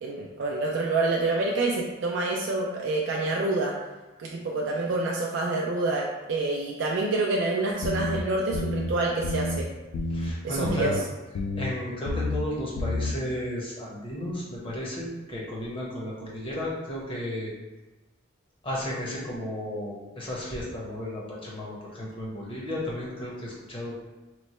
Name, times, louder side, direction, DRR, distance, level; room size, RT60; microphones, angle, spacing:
voice 1, 0.0-3.7 4.2-9.7 10.4-10.9, right 2 dB, 60° right, -2 dB, 0.3 m, -27 dB
sound 1, 7.8-8.2 8.5-8.9 9.2-9.6 9.9-10.3 10.6-11.0 11.3-11.7 12.0-12.4 12.8-13.1, left 2 dB, 75° left, 0.3 m, -29 dB
voice 2, 10.1-11.0 11.5-17.5 18.6-24.0, equal, 25° left, -5 dB, 0.7 m, -34 dB
3.0 x 2.1 x 4.1 m, 1.1 s
head